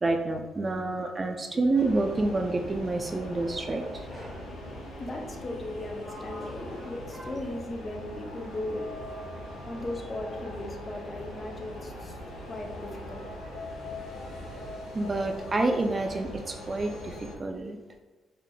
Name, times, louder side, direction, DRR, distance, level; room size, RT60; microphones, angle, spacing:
voice 1, 0.0-4.1 14.9-17.8, right 2 dB, 30° right, 4 dB, 0.4 m, -28 dB
sound 1, 1.7-17.4, left 1 dB, 90° left, 1.1 m, -41 dB
Sliding door, 4.1-4.5 5.5-8.0 8.5-9.9, equal, 5° left, 1.3 m, -48 dB
voice 2, 4.9-8.9 9.7-12.2 12.4-13.2, left 1 dB, 30° left, 2 dB, 0.7 m, -37 dB
4.8 x 3.3 x 2.2 m, 1.2 s
cardioid pair, 90°, 0 cm